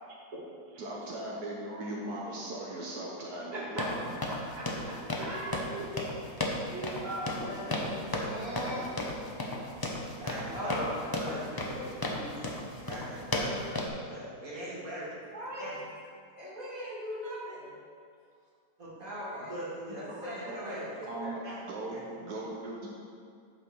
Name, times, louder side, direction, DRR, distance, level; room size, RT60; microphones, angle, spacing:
voice 1, 0.8-4.0 5.2-6.2 20.5-20.6 21.1-22.9, right 1 dB, 85° right, -4 dB, 1.7 m, -39 dB
voice 2, 3.5-3.9 4.3-5.6 6.5-7.7 8.5-8.9 9.5-9.6 10.5-11.9 15.3-15.8 16.4-17.7 19.0-19.5 20.0-21.4, equal, 25° right, -8 dB, 2.3 m, -40 dB
sound 1, 3.8-13.9, left 1 dB, 20° left, 0.6 m, -34 dB
voice 3, 7.6-8.8 10.2-11.9 12.2-15.2 15.6-15.8 18.8-19.0 19.3-20.8 21.4-21.6 21.9-22.0, equal, 60° right, -7 dB, 2.7 m, -41 dB
8.8 x 5.0 x 6.3 m, 2.3 s
omnidirectional pair, 1.7 m